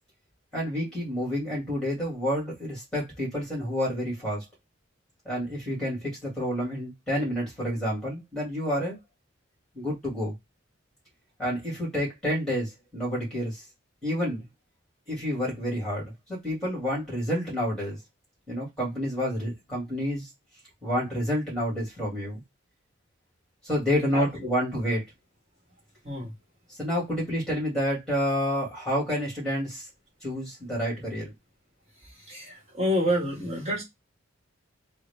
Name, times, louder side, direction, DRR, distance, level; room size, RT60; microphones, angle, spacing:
voice 1, 0.5-4.4 5.3-9.0 9.7-10.3 11.4-13.6 14.0-14.4 15.1-18.0 18.5-20.3 20.8-22.4 23.6-25.0 26.8-29.9 30.2-31.3, equal, 5° left, 2.0 m, -29 dB
voice 2, 24.1-24.5 26.0-26.3 32.0-33.8, equal, 30° right, 1.4 m, -28 dB
3.7 x 2.1 x 3.4 m
head